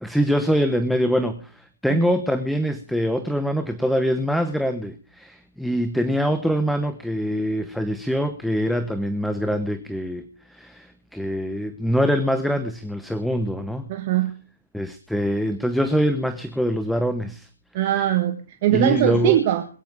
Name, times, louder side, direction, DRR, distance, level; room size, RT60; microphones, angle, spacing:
voice 1, 0.0-13.9 14.7-17.5 17.9-18.0 18.7-19.4, equal, ahead, 10 dB, 0.8 m, -24 dB
voice 2, 13.9-14.3 17.7-19.7, right 12 dB, 35° right, 7 dB, 1.5 m, -21 dB
21.0 x 9.3 x 5.1 m, 0.38 s
figure-of-eight pair, 130°, 0 cm